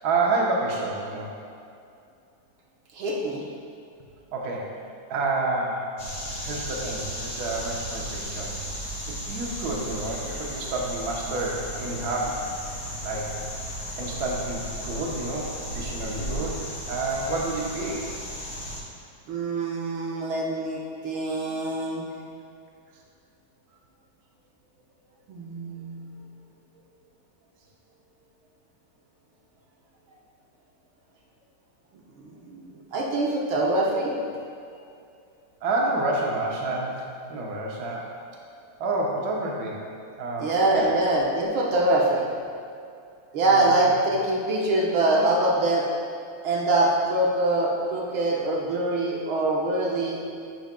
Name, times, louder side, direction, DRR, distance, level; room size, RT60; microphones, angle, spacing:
voice 1, 0.0-1.3 4.3-4.7 5.1-5.9 6.2-8.5 9.1-12.6 13.0-13.3 14.0-18.1 35.6-38.1 38.8-39.8 40.2-40.9 41.7-41.8 43.5-43.9, right 2 dB, 55° right, -2 dB, 1.4 m, -29 dB
voice 2, 2.9-3.5 19.3-22.1 25.3-26.3 32.2-34.2 40.4-42.3 43.3-45.9 46.4-50.2, right 2 dB, 90° right, -3 dB, 2.0 m, -24 dB
sound 1, 6.0-18.8, equal, 55° left, 2.5 m, -35 dB
10.0 x 7.8 x 2.3 m, 2.5 s
omnidirectional pair, 2.2 m